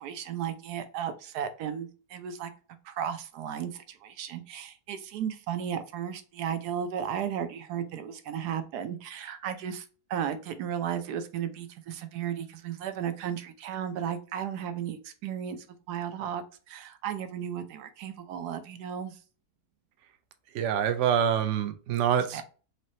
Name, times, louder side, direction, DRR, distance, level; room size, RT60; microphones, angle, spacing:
voice 1, 0.0-2.5 2.8-19.2 22.3-22.4, right 9 dB, 85° right, 1.2 m, -35 dB
voice 2, 20.5-22.4, right 8 dB, 65° right, 0.8 m, -26 dB
4.0 x 3.3 x 2.7 m
omnidirectional pair, 1.7 m